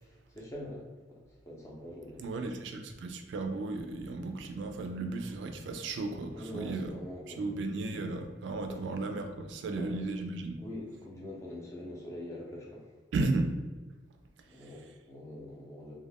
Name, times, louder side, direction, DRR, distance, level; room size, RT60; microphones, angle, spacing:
voice 1, 0.0-2.2 6.3-7.6 8.7-9.1 9.7-10.0 10.6-12.9 14.5-16.0, left 1 dB, 15° left, -4 dB, 0.6 m, -44 dB
voice 2, 2.2-6.9 7.3-10.6 13.1-13.5, right 3 dB, 75° right, 6 dB, 0.3 m, -34 dB
2.4 x 2.2 x 3.4 m, 1.3 s
head